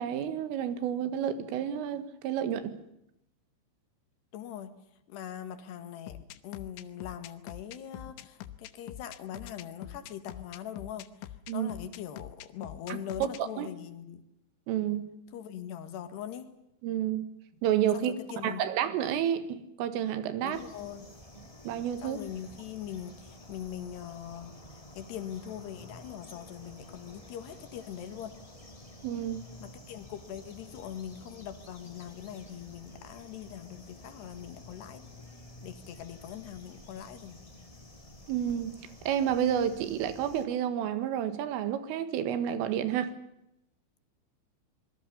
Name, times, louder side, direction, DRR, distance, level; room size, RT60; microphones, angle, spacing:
voice 1, 0.0-2.8 11.5-11.7 12.9-13.0 13.4-13.7 14.7-15.1 16.8-17.3 17.6-18.1 18.4-20.6 21.7-22.2 29.0-29.4 38.3-38.8 39.0-43.1, right 10 dB, 85° right, 4.3 m, -30 dB
voice 2, 4.3-4.8 5.1-14.2 15.3-16.5 17.9-18.7 20.4-21.1 22.0-28.4 29.6-35.0 35.6-37.5, left 10 dB, 65° left, 3.7 m, -42 dB
sound 1, 6.1-13.4, left 13 dB, 80° left, 3.4 m, -44 dB
sound 2, 20.5-40.5, left 1 dB, 20° left, 0.8 m, -51 dB
26.0 x 21.5 x 7.0 m
omnidirectional pair, 5.6 m